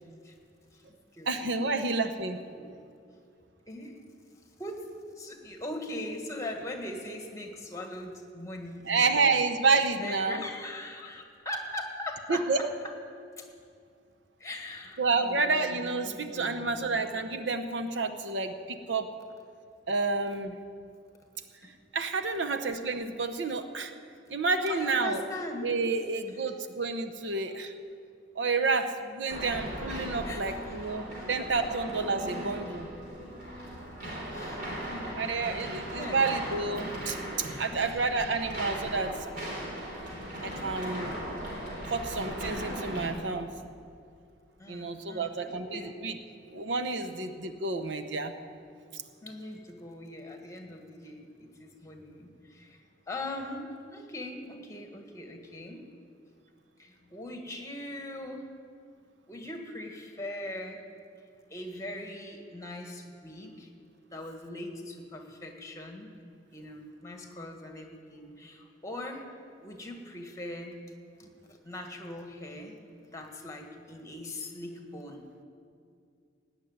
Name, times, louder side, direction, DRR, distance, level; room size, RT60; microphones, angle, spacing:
voice 1, 1.3-2.4 8.9-10.4 12.3-12.6 15.0-19.1 19.9-20.6 21.9-23.9 24.3-25.2 25.6-27.7 28.3-32.9 34.0-34.2 35.1-39.5 40.4-41.1 41.9-43.5 44.7-46.2 46.5-48.3 48.9-49.0, right 3 dB, 85° right, 8 dB, 0.9 m, -29 dB
voice 2, 3.7-4.0 4.6-4.9 5.2-9.4 10.0-12.5 13.4-13.5 14.4-17.1 21.6-21.7 24.6-25.7 30.3-30.7 34.3-35.2 36.0-36.2 37.7-38.2 44.6-46.0 49.2-55.8 56.8-58.5 59.3-60.8 61.5-63.7 64.1-66.1 66.5-69.3 69.6-70.8 71.2-71.3 71.6-72.8 73.1-75.3, left 1 dB, 15° left, 3 dB, 1.6 m, -41 dB
sound 1, 29.3-43.1, equal, 55° right, 3.9 m, -38 dB
17.5 x 6.4 x 9.6 m, 2.4 s
head